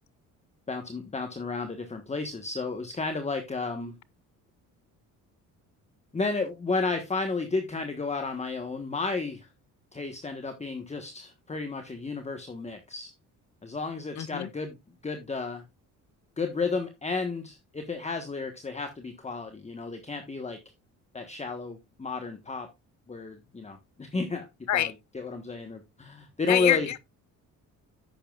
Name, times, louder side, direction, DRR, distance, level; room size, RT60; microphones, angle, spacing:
voice 1, 0.7-3.9 6.1-9.5 9.9-13.1 13.6-14.8 15.0-15.6 16.4-20.6 21.1-22.7 23.1-24.5 24.7-26.9, left 4 dB, 20° left, 1.3 m, -32 dB
voice 2, 14.2-14.5 24.7-24.9 26.5-27.0, left 11 dB, 55° left, 0.8 m, -26 dB
10.5 x 8.6 x 2.4 m
cardioid pair, 100°, 35 cm